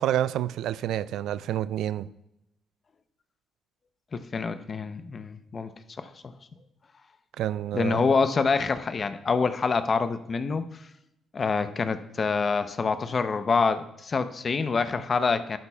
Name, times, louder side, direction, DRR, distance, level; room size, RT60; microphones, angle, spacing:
voice 1, 0.0-2.1 7.4-8.0, right 12 dB, 80° right, 0.3 m, -28 dB
voice 2, 4.1-5.7 6.0-6.3 7.7-10.7 11.3-15.6, left 4 dB, 40° left, 0.6 m, -26 dB
11.5 x 11.0 x 2.3 m
cardioid pair, 90°, 0 cm